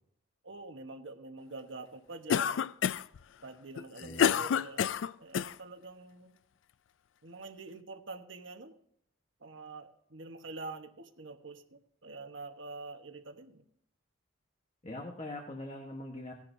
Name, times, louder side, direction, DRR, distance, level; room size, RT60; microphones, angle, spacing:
voice 1, 0.4-2.7 3.4-4.9 5.2-6.4 7.2-8.7 9.4-13.6, right 3 dB, 65° right, 6 dB, 1.2 m, -46 dB
Cough, 2.3-3.2 3.8-5.5, left 8 dB, 70° left, 0.3 m, -28 dB
voice 2, 4.0-4.4 14.8-16.3, left 1 dB, 30° left, 2 dB, 1.1 m, -42 dB
17.5 x 10.5 x 2.7 m, 0.69 s
head